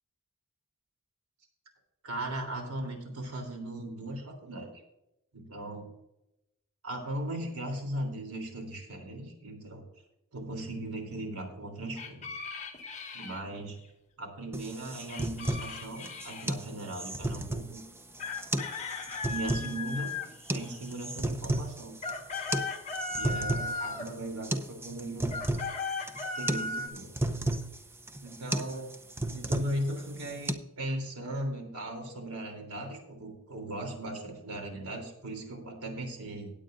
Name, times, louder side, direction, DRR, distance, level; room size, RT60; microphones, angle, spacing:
voice 1, 2.0-4.7 5.3-5.9 6.8-9.9 10.3-12.4 13.1-13.8 14.2-17.8 19.3-20.1 20.5-22.0 23.1-25.4 26.3-27.1 28.2-28.9 29.3-36.5, right 1 dB, 90° right, 3 dB, 3.3 m, -38 dB
sound 1, 11.9-13.4 15.1-16.5 18.2-20.9 21.8-24.2 25.3-26.9, left 4 dB, 35° left, 1.5 m, -37 dB
sound 2, 14.5-30.5, right 1 dB, 10° right, 0.6 m, -34 dB
18.0 x 8.5 x 2.6 m, 0.88 s
head